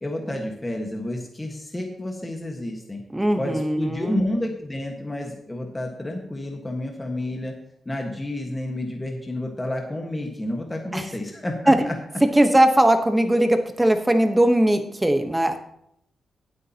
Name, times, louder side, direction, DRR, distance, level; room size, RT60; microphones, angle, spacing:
voice 1, 0.0-3.0 3.4-7.5 7.8-11.9, left 1 dB, 15° left, 1 dB, 1.5 m, -30 dB
voice 2, 3.1-4.2 10.9-11.1 11.7-11.9 12.3-15.6, right 1 dB, 10° right, 7 dB, 1.0 m, -19 dB
18.5 x 8.4 x 2.9 m, 0.74 s
cardioid pair, 105°, 0 cm